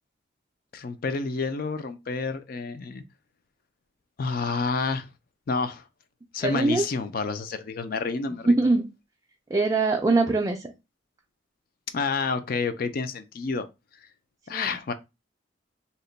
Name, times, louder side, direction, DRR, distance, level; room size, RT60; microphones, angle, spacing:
voice 1, 0.7-3.0 4.2-5.1 5.5-5.8 6.3-8.7 11.9-13.7 14.5-14.9, left 4 dB, 50° left, 0.4 m, -29 dB
voice 2, 6.4-6.9 8.5-8.9 9.5-10.7 14.5-14.7, right 3 dB, 20° right, 0.3 m, -22 dB
2.9 x 2.1 x 3.9 m
head